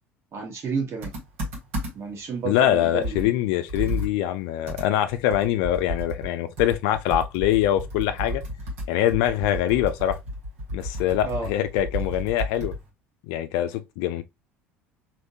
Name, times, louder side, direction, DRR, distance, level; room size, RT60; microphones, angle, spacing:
voice 1, 0.3-1.1 1.9-3.3 11.2-11.5, right 5 dB, 40° right, 1.4 m, -31 dB
Computer keyboard, 1.0-2.2 2.6-2.7 3.0-12.9, left 1 dB, 70° right, 1.4 m, -33 dB
voice 2, 2.4-8.4 8.9-10.2 10.7-12.8 13.2-14.2, left 12 dB, 65° left, 0.5 m, -24 dB
3.5 x 2.7 x 2.7 m
figure-of-eight pair, 65°, 7 cm